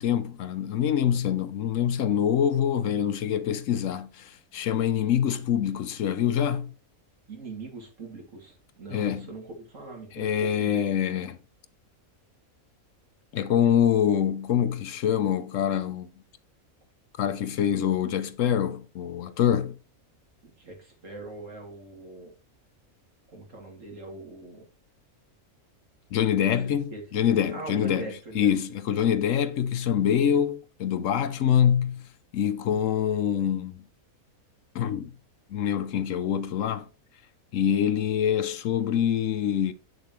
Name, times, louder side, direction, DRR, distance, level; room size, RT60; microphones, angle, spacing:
voice 1, 0.0-6.7 8.9-9.3 10.1-11.4 13.3-16.1 17.2-19.8 26.1-32.0 32.3-33.8 34.7-35.1 35.5-36.9 37.5-39.7, left 9 dB, 70° left, 0.9 m, -25 dB
voice 2, 7.3-10.9 20.4-22.3 23.3-24.6 26.4-27.2 27.5-28.5 28.9-29.2, right 2 dB, 60° right, 2.6 m, -42 dB
7.9 x 6.7 x 3.1 m
omnidirectional pair, 1.5 m